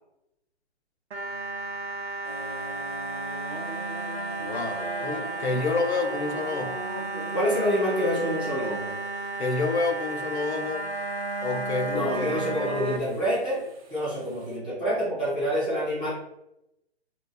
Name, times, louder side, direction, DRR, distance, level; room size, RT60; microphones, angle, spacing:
sound 1, 1.1-13.0, right 2 dB, 80° right, 0.6 m, -33 dB
sound 2, 2.2-14.6, right 1 dB, 35° right, 0.7 m, -43 dB
voice 1, 4.4-6.8 9.4-10.8 11.4-13.3, left 3 dB, 85° left, 7 dB, 0.6 m, -29 dB
voice 2, 7.3-9.0 11.9-13.6 13.9-16.1, equal, 10° right, -8 dB, 0.3 m, -27 dB
2.3 x 2.3 x 3.6 m, 0.84 s
hypercardioid pair, 145°, 33 cm